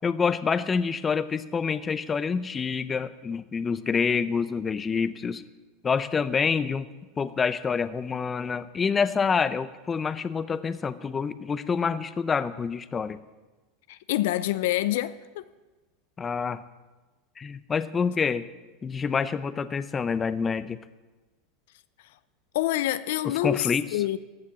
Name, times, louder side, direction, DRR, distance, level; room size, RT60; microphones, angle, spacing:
voice 1, 0.0-5.4 5.8-6.9 7.2-13.2 16.2-16.6 17.4-18.5 18.8-20.8 23.2-23.9, left 5 dB, 25° left, 0.7 m, -27 dB
voice 2, 13.9-15.4 22.5-24.2, left 15 dB, 75° left, 0.5 m, -27 dB
15.0 x 6.5 x 8.6 m
supercardioid pair, 110°, 0 cm